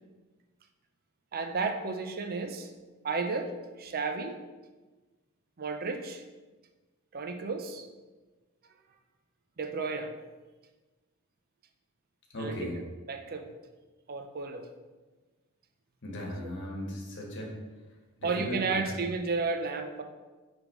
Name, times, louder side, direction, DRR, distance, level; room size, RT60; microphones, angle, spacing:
voice 1, 1.3-2.7 3.0-4.4 5.6-6.2 7.1-7.9 9.6-10.1 12.4-12.7 13.1-13.5 14.1-14.7 18.2-20.0, right 4 dB, 45° right, 6 dB, 0.5 m, -32 dB
voice 2, 12.3-12.8 16.0-17.5 18.2-18.9, equal, 55° left, -2 dB, 1.4 m, -37 dB
8.8 x 3.5 x 3.1 m, 1.2 s
head